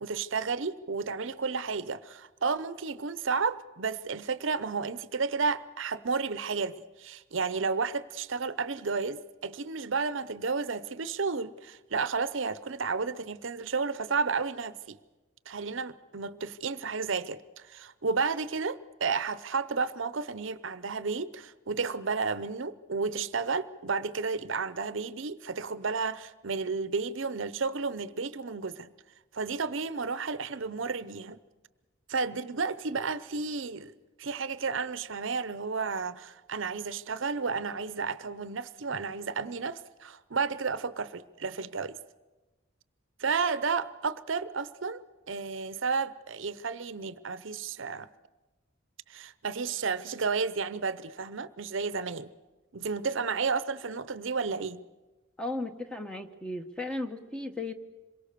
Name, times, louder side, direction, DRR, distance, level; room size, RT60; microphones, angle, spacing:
voice 1, 0.0-15.0 15.5-17.4 17.7-28.9 29.3-31.4 32.1-33.9 34.2-42.0 43.2-45.0 45.3-48.1 49.1-52.3 52.7-54.8, right 4 dB, 65° right, 0.7 m, -32 dB
voice 2, 55.4-57.7, left 2 dB, 5° left, 1.1 m, -35 dB
27.0 x 23.0 x 6.8 m
head